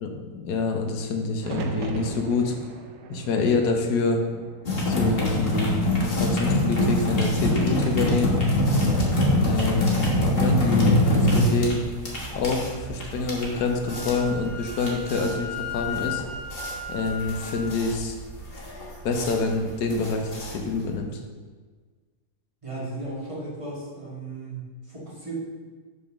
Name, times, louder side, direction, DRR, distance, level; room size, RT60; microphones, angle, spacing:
voice 1, 0.0-2.6 3.1-4.2 4.9-8.3 9.4-11.8 12.3-16.2 16.9-18.2 19.0-21.2, left 3 dB, 80° left, 3 dB, 1.4 m, -26 dB
sound 1, 1.4-5.4 5.8-6.6 8.4-8.9, right 4 dB, 85° right, 1.3 m, -39 dB
sound 2, 4.7-21.0, left 1 dB, 40° left, 1.4 m, -24 dB
Wind instrument woodwind instrument, 13.5-17.7, left 4 dB, 50° right, 2.1 m, -36 dB
voice 2, 22.6-25.4, right 2 dB, 20° right, -6 dB, 1.8 m, -35 dB
5.4 x 4.1 x 5.9 m, 1.5 s
omnidirectional pair, 1.7 m